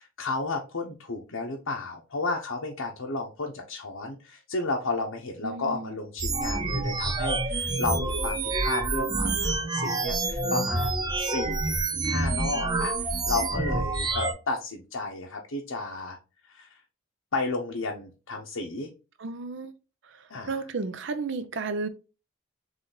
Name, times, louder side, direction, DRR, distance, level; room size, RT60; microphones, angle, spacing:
voice 1, 0.0-16.2 16.5-16.8 17.3-18.9 20.3-20.6, left 3 dB, 80° left, 0.8 m, -33 dB
voice 2, 5.4-5.9 19.2-19.7 20.5-21.9, right 3 dB, 60° right, 0.5 m, -32 dB
sound 1, 6.2-14.3, right 2 dB, 20° right, 0.6 m, -27 dB
3.9 x 3.3 x 3.8 m
head